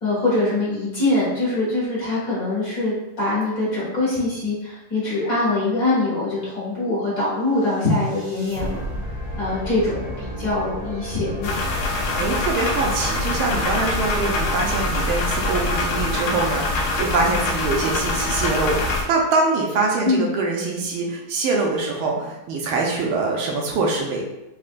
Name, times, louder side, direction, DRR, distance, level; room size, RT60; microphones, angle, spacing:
voice 1, 0.0-8.8 9.4-11.6 20.0-20.3, left 2 dB, 50° left, -8 dB, 1.2 m, -23 dB
sound 1, 7.6-17.8, right 1 dB, 60° right, 1.1 m, -33 dB
sound 2, 11.4-19.0, left 2 dB, 75° left, 0.9 m, -24 dB
voice 2, 12.1-24.2, right 3 dB, 80° right, -1 dB, 1.5 m, -24 dB
4.2 x 2.1 x 2.5 m, 0.96 s
omnidirectional pair, 2.3 m